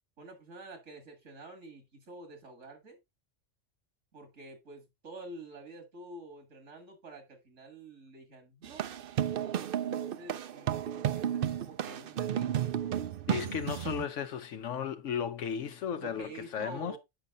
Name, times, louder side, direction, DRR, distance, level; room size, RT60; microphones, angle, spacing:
voice 1, 0.2-3.0 4.1-8.9 9.8-12.7 16.0-17.0, right 2 dB, 80° right, 2.4 m, -48 dB
sound 1, 8.6-14.0, right 10 dB, 55° right, 0.7 m, -33 dB
voice 2, 13.3-17.0, left 8 dB, 75° left, 1.0 m, -35 dB
8.9 x 5.4 x 3.7 m
omnidirectional pair, 1.3 m